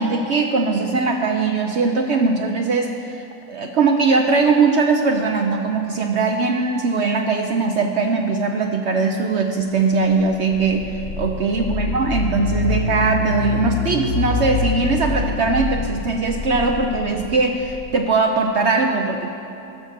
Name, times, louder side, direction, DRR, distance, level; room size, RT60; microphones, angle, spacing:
voice 1, 0.0-19.3, right 4 dB, 75° right, 3 dB, 0.6 m, -20 dB
sound 1, 10.1-17.9, left 4 dB, 80° left, 0.5 m, -26 dB
14.5 x 6.5 x 6.4 m, 2.9 s
omnidirectional pair, 1.9 m